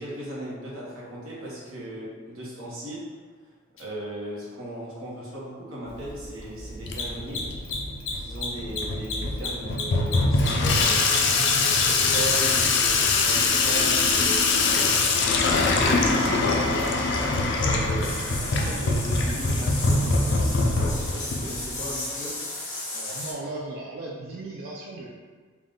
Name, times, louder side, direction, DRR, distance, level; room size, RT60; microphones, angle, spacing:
voice 1, 0.0-3.0 3.8-7.4 8.1-11.1 11.8-14.9 15.8-16.9 17.5-18.1 18.4-22.3, right 1 dB, 85° right, -6 dB, 1.1 m, -37 dB
Mechanisms, 3.8-3.9 6.8-12.4, left 5 dB, 75° left, 0.9 m, -32 dB
Water tap faucet / Sink (filling or washing), 5.9-21.9, left 3 dB, 55° left, 0.4 m, -23 dB
sound 1, 18.0-23.3, left 2 dB, 35° left, 0.8 m, -34 dB
voice 2, 22.9-25.1, right 2 dB, 50° right, -3 dB, 0.3 m, -36 dB
3.6 x 2.4 x 3.7 m, 1.5 s
head